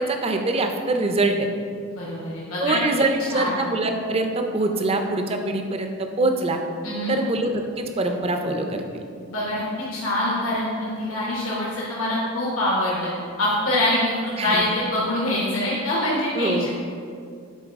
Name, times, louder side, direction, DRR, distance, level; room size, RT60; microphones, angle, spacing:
voice 1, 0.0-1.5 2.6-6.6 7.1-9.0 14.4-14.7 16.4-16.7, right 2 dB, 30° right, 5 dB, 0.4 m, -24 dB
voice 2, 1.9-2.8 3.3-3.6 6.8-7.1 9.3-9.6 9.9-13.1 13.4-16.7, left 1 dB, 80° left, -5 dB, 1.0 m, -24 dB
8.6 x 3.8 x 3.5 m, 2.3 s
head